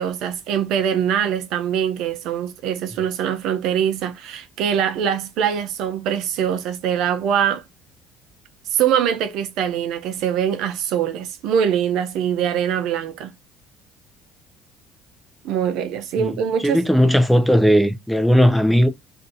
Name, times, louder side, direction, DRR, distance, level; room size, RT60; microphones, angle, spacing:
voice 1, 0.0-7.6 8.7-13.3 15.4-16.8, right 8 dB, 70° right, 0.6 m, -23 dB
voice 2, 16.2-18.9, equal, ahead, 0.6 m, -17 dB
2.7 x 2.7 x 3.7 m
supercardioid pair, 80°, 0 cm